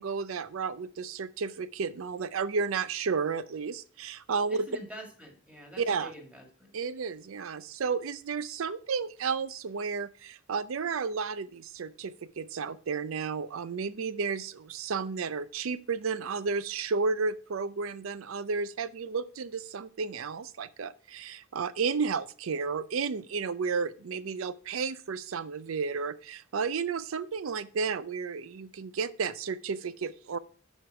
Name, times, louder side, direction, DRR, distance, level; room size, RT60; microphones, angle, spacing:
voice 1, 0.0-4.7 5.8-6.1 6.7-30.4, right 5 dB, 85° right, 16 dB, 0.5 m, -32 dB
voice 2, 4.5-6.7, equal, 5° right, 1 dB, 1.8 m, -46 dB
7.2 x 5.2 x 4.6 m, 0.43 s
head